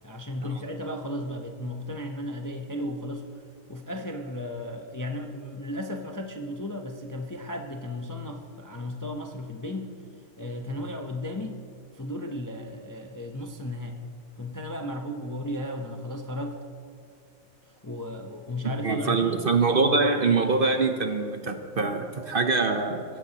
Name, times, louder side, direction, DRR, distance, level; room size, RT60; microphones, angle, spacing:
voice 1, 0.0-3.4 3.7-9.9 10.4-11.6 11.9-14.0 14.4-16.6 17.8-19.4, left 1 dB, 20° left, 3 dB, 0.6 m, -35 dB
voice 2, 18.8-23.0, right 4 dB, 45° right, 6 dB, 0.9 m, -24 dB
22.0 x 16.0 x 2.9 m, 2.3 s
omnidirectional pair, 1.5 m